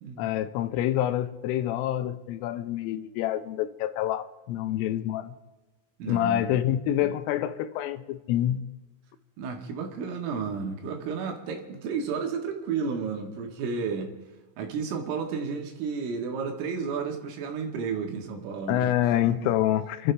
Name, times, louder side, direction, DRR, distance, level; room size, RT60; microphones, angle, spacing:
voice 1, 0.2-5.4 6.1-8.6 18.7-20.1, left 12 dB, 85° left, 11 dB, 3.3 m, -27 dB
voice 2, 6.0-6.4 9.4-14.1 14.6-18.9 19.2-19.5, right 5 dB, 75° right, 2 dB, 4.3 m, -32 dB
28.5 x 12.5 x 3.4 m, 1.2 s
omnidirectional pair, 5.8 m